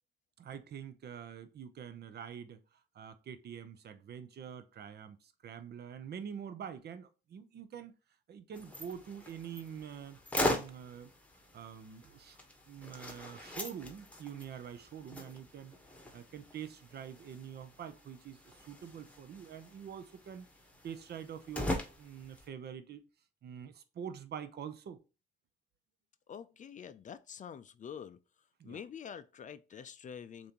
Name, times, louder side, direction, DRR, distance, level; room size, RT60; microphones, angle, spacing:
voice 1, 0.4-2.6 2.9-7.9 8.3-11.1 11.5-12.4 12.7-15.7 16.1-20.5 20.8-23.0 23.4-25.0 28.6-28.8, right 8 dB, 55° right, 0.6 m, -46 dB
sound 1, 8.5-22.5, left 1 dB, 5° left, 1.1 m, -41 dB
voice 2, 26.3-28.2 28.6-30.5, left 7 dB, 40° left, 0.4 m, -46 dB
6.7 x 2.6 x 2.9 m
cardioid pair, 90°, 20 cm